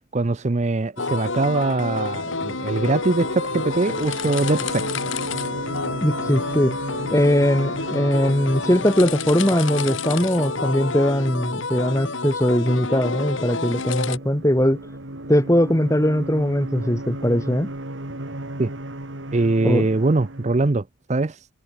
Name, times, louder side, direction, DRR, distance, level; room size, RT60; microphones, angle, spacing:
voice 1, 0.1-4.9 18.6-18.7 19.3-21.3, right 2 dB, 35° right, 0.5 m, -22 dB
sound 1, 1.0-14.2, left 3 dB, 70° left, 2.1 m, -29 dB
sound 2, 1.5-20.7, right 1 dB, 65° right, 2.8 m, -36 dB
voice 2, 6.0-6.8 7.1-14.8 15.3-17.7 19.6-19.9, equal, 15° left, 2.2 m, -20 dB
head